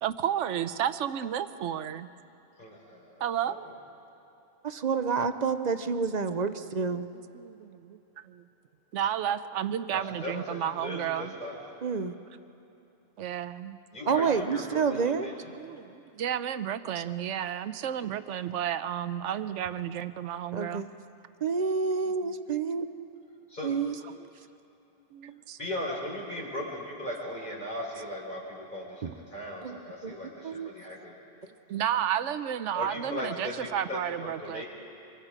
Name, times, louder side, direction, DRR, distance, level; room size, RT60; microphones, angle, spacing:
voice 1, 0.0-2.1 3.2-3.7 7.3-8.0 8.2-8.4 8.9-11.3 13.2-13.8 15.5-20.9 23.0-23.1 25.1-25.6 31.7-34.6, right 10 dB, 85° right, 12 dB, 1.0 m, -32 dB
voice 2, 2.6-3.5 9.9-11.6 13.9-15.5 23.5-23.7 25.6-31.1 32.7-34.6, left 1 dB, 40° left, -3 dB, 4.4 m, -38 dB
voice 3, 4.6-7.1 11.8-12.1 14.1-15.3 17.0-17.1 20.5-20.9 21.4-22.9 23.6-24.0 29.0-29.1 29.6-30.1 30.4-30.7, right 5 dB, 45° right, 10 dB, 0.6 m, -29 dB
25.5 x 22.5 x 4.9 m, 2.9 s
omnidirectional pair, 1.2 m